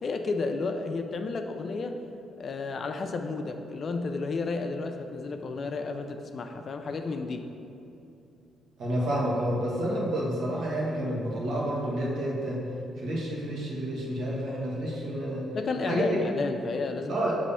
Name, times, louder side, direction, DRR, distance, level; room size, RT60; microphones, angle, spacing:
voice 1, 0.0-2.0 2.4-7.5 15.5-17.2, left 3 dB, 50° left, 6 dB, 0.4 m, -32 dB
voice 2, 8.8-12.6 13.0-15.5 15.8-16.2 17.1-17.4, right 1 dB, 70° right, -4 dB, 1.5 m, -29 dB
7.1 x 3.1 x 5.5 m, 2.7 s
cardioid pair, 90°, 0 cm